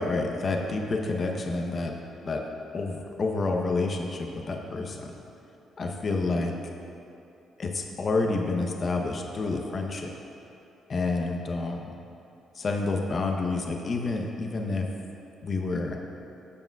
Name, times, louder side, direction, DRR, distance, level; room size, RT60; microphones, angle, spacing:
voice 1, 0.0-1.9 2.2-2.4 2.7-5.1 5.8-6.7 7.6-10.1 10.9-11.8 12.5-14.9 15.4-16.0, left 3 dB, 45° left, 2 dB, 0.8 m, -29 dB
13.5 x 7.1 x 2.3 m, 2.8 s
cardioid pair, 90°, 0 cm